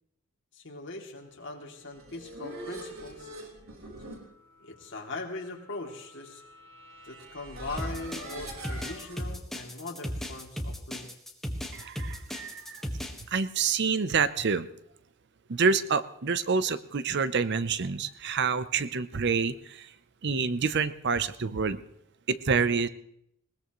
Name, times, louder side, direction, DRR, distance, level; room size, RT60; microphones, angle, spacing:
voice 1, 0.5-3.3 4.6-6.4 7.0-11.1, left 3 dB, 60° left, 0 dB, 2.7 m, -40 dB
sound 1, 1.7-9.2, right 1 dB, 85° right, 4.1 m, -44 dB
sound 2, 7.8-13.2, equal, ahead, 1.5 m, -35 dB
voice 2, 11.7-12.8 13.3-14.7 15.5-19.9 20.2-21.8 22.3-22.9, right 5 dB, 55° right, 13 dB, 0.7 m, -27 dB
20.5 x 19.5 x 3.1 m, 0.72 s
head